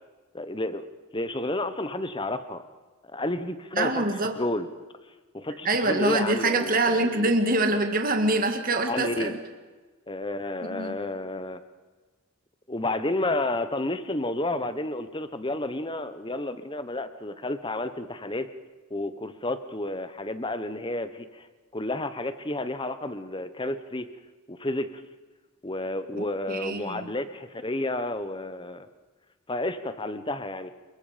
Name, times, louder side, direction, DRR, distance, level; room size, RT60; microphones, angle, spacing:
voice 1, 0.3-0.8 1.1-2.6 3.1-4.0 4.4-4.7 5.1-7.4 8.9-9.4 10.1-11.6 12.7-18.5 18.9-21.5 21.7-24.1 24.5-25.0 25.6-28.9 29.5-30.7, left 2 dB, 20° left, 11 dB, 1.1 m, -31 dB
voice 2, 3.7-4.4 5.7-9.4 10.6-10.9 26.2-27.1, right 2 dB, 40° right, 5 dB, 2.0 m, -25 dB
28.5 x 21.5 x 5.2 m, 1.3 s
head